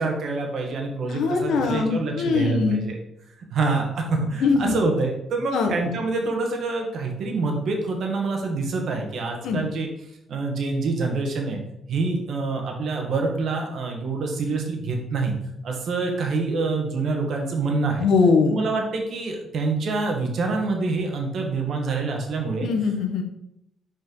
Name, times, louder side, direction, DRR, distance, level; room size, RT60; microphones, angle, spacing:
voice 1, 0.0-3.0 3.5-9.9 10.3-11.6 11.9-15.3 15.6-18.0 18.5-22.7, right 3 dB, 65° right, 2 dB, 1.4 m, -26 dB
voice 2, 1.1-2.8 4.4-4.8 5.5-6.0 9.4-9.6 18.0-18.6 22.6-23.2, left 4 dB, 80° left, 4 dB, 1.0 m, -22 dB
5.6 x 4.5 x 3.8 m, 0.80 s
cardioid pair, 90°, 0 cm